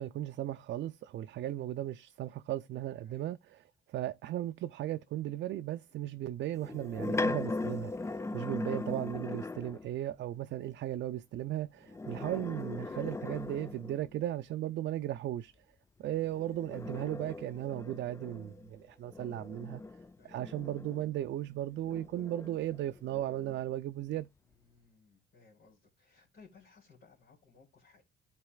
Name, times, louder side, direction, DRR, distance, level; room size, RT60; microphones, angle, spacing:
voice 1, 0.0-3.4 3.9-15.5 16.0-19.8 20.2-24.3, right 13 dB, 65° right, 0.4 m, -36 dB
sound 1, 6.6-9.9 11.8-14.2 16.1-21.3 21.9-23.6, left 2 dB, 15° left, 0.3 m, -39 dB
voice 2, 19.8-20.4 24.4-28.0, left 4 dB, 70° left, 3.3 m, -62 dB
12.0 x 4.1 x 2.2 m
cardioid pair, 90°, 20 cm